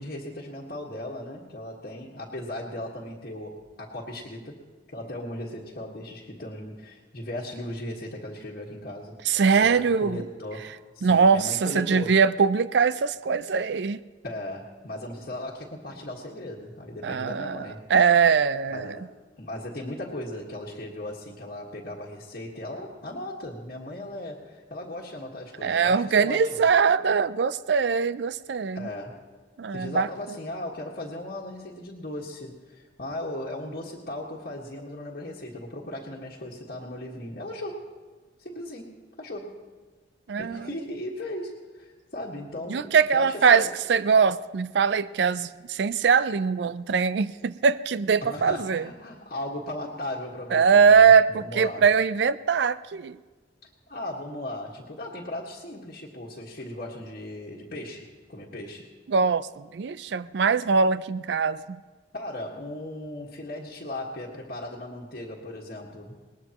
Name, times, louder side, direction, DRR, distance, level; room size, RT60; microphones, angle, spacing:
voice 1, 0.0-4.6 4.9-9.2 9.6-12.2 14.2-17.9 18.7-26.6 28.7-29.3 29.7-37.9 38.4-39.6 40.4-43.7 48.2-51.8 53.9-58.9 62.1-66.2, left 1 dB, 55° left, -4 dB, 1.6 m, -37 dB
voice 2, 9.3-10.2 11.0-14.0 17.0-19.0 25.6-28.9 29.6-30.1 40.3-40.7 42.7-48.9 50.5-53.2 59.1-61.6, right 6 dB, 65° right, 16 dB, 0.4 m, -22 dB
20.0 x 19.5 x 3.0 m, 1.3 s
head